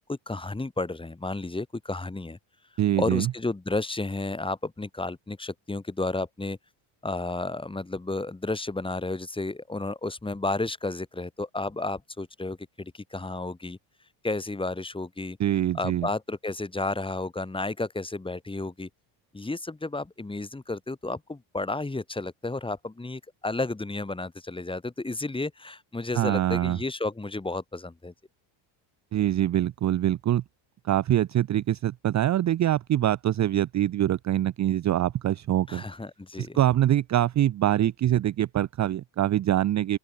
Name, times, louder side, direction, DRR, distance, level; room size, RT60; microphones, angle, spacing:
voice 1, 0.0-2.4 3.0-6.6 7.0-13.8 14.2-15.4 15.7-18.9 19.3-28.1 35.7-36.6, left 2 dB, 10° left, 7.9 m, -32 dB
voice 2, 2.8-3.3 15.4-16.1 26.1-26.8 29.1-30.4 30.8-35.8 36.4-40.0, right 12 dB, 35° right, 0.8 m, -24 dB
open air
cardioid pair, 145°, 48 cm